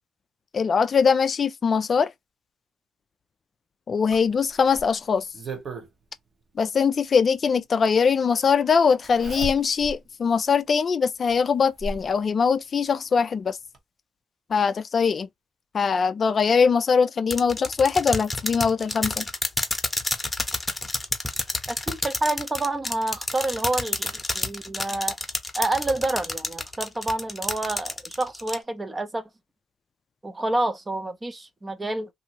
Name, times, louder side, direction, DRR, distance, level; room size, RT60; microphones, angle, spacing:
voice 1, 0.5-2.1 3.9-5.2 6.6-13.6 14.5-15.3 15.7-19.2, left 6 dB, 45° left, 0.3 m, -22 dB
Zipper (clothing), 4.1-5.9 7.3-7.4 9.0-10.0 10.5-10.6 11.3-12.1 13.3-13.4 13.7-13.8, right 2 dB, 50° right, 1.0 m, -36 dB
sound 1, 17.3-28.6, left 2 dB, 10° left, 0.9 m, -29 dB
voice 2, 21.7-25.2 25.5-29.2 30.2-32.1, right 2 dB, 20° right, 0.6 m, -28 dB
2.7 x 2.6 x 2.8 m
cardioid pair, 85°, 0 cm